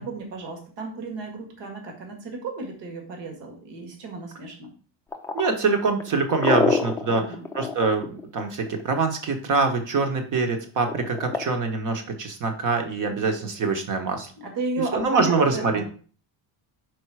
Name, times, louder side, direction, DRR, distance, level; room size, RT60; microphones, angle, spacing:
voice 1, 0.0-4.7 7.1-7.4 14.4-15.8, right 3 dB, 65° right, 3 dB, 1.9 m, -33 dB
sound 1, 5.1-8.8 10.9-11.5, left 4 dB, 5° left, 0.4 m, -26 dB
voice 2, 5.3-7.2 7.5-14.3 14.9-15.8, right 4 dB, 40° right, 5 dB, 1.2 m, -24 dB
5.2 x 4.7 x 4.7 m, 0.41 s
cardioid pair, 165°, 45 cm